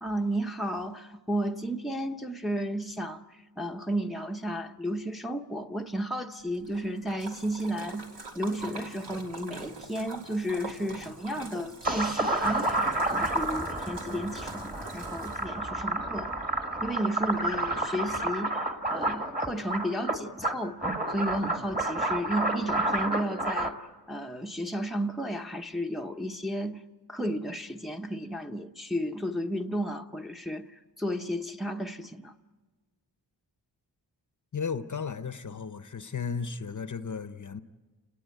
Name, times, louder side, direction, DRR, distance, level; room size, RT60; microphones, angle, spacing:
voice 1, 0.0-8.1 8.4-16.3 16.8-20.8 21.1-23.8 24.1-26.8 27.1-32.3, equal, ahead, 0.8 m, -33 dB
Splash splatter, 6.5-15.7, right 3 dB, 75° right, 3.1 m, -44 dB
sound 1, 11.8-23.7, right 2 dB, 20° right, 1.7 m, -30 dB
voice 2, 34.5-37.6, left 5 dB, 45° left, 0.8 m, -34 dB
30.0 x 19.0 x 9.2 m
wide cardioid pair, 135°, 42 cm